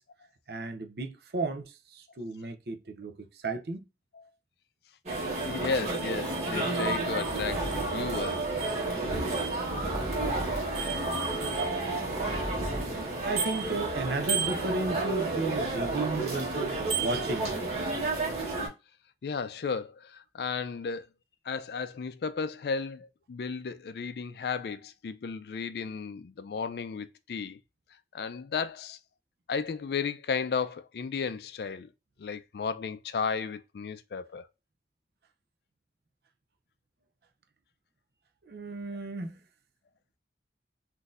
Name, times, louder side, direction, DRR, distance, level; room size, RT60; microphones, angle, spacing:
voice 1, 0.5-3.8 12.9-17.6 38.5-39.3, right 2 dB, 60° right, 0.6 m, -34 dB
sound 1, 5.1-18.7, right 3 dB, 35° right, 1.2 m, -31 dB
voice 2, 5.4-8.5 19.2-21.1 21.4-27.6 28.1-29.0 29.5-31.9 32.2-34.5, left 5 dB, 60° left, 0.3 m, -34 dB
sound 2, 7.1-12.9, equal, 25° left, 0.8 m, -40 dB
3.9 x 2.6 x 2.4 m
head